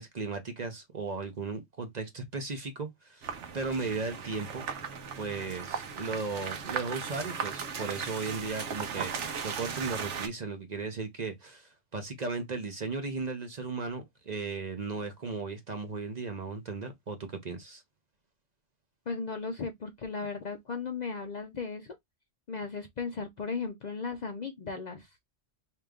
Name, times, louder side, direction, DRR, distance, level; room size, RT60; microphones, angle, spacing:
voice 1, 0.0-4.6 5.2-17.8, right 4 dB, 45° right, 0.7 m, -36 dB
sound 1, 3.2-10.3, right 6 dB, 80° right, 1.1 m, -37 dB
voice 2, 19.1-22.0 22.5-25.1, left 5 dB, 50° left, 0.5 m, -36 dB
4.9 x 2.9 x 2.3 m
omnidirectional pair, 1.2 m